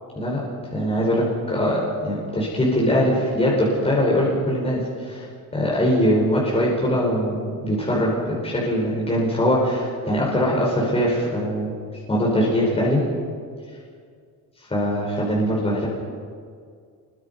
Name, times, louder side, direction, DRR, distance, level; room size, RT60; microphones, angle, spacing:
voice 1, 0.7-11.7 12.1-13.0 14.7-15.9, equal, 15° left, -4 dB, 5.0 m, -22 dB
28.0 x 22.0 x 5.5 m, 2.1 s
cardioid pair, 150°, 37 cm